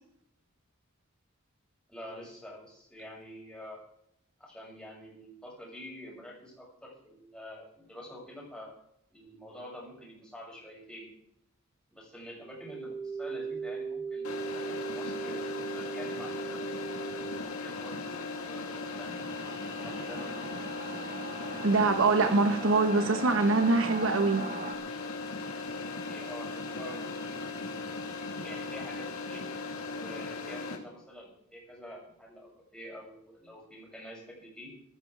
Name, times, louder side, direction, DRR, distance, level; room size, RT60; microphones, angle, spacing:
voice 1, 1.9-3.8 4.4-8.7 9.1-11.1 11.9-16.6 17.4-19.1 19.8-20.6 26.0-27.1 28.4-29.4 29.9-34.7, equal, 5° left, 6.6 m, -47 dB
sound 1, 12.4-17.4, right 5 dB, 20° left, 2.4 m, -38 dB
sound 2, 14.2-30.8, left 3 dB, 75° left, 2.5 m, -38 dB
Singing / Musical instrument, 17.6-24.7, right 3 dB, 35° right, 1.1 m, -42 dB
voice 2, 21.6-24.4, right 3 dB, 65° right, 1.1 m, -24 dB
15.0 x 13.5 x 4.7 m
head